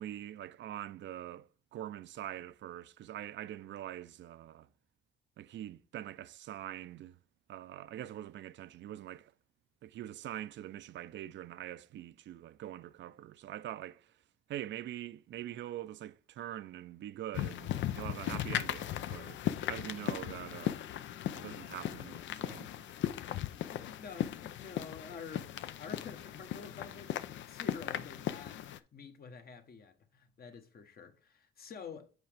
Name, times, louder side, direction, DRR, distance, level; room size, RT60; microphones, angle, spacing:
voice 1, 0.0-4.7 5.4-7.2 7.5-9.3 9.8-14.1 14.5-19.4 19.7-20.8 21.3-22.9, right 12 dB, 65° right, 0.5 m, -44 dB
sound 1, 17.3-28.8, left 11 dB, 70° left, 0.5 m, -37 dB
voice 2, 23.2-27.2 27.4-32.1, left 5 dB, 50° left, 1.1 m, -49 dB
8.0 x 4.8 x 3.4 m
cardioid pair, 90°, 20 cm